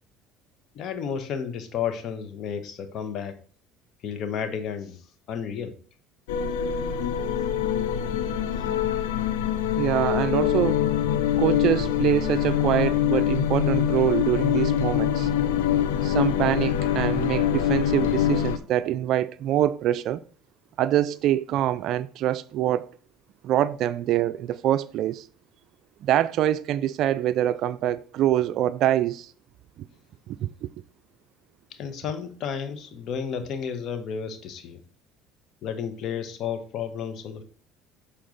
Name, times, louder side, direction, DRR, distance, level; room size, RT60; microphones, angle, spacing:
voice 1, 0.7-3.4 4.0-5.0 5.3-5.7 8.5-8.7 31.7-34.8 35.6-37.4, left 7 dB, 55° left, 1.1 m, -32 dB
sound 1, 6.3-18.6, left 10 dB, 80° left, 0.6 m, -24 dB
voice 2, 9.8-10.9 11.4-15.3 16.0-20.2 20.8-22.9 23.4-25.3 26.0-29.3 29.8-29.9 30.3-30.5, right 12 dB, 60° right, 0.3 m, -25 dB
7.4 x 4.3 x 3.9 m
hypercardioid pair, 70°, 0 cm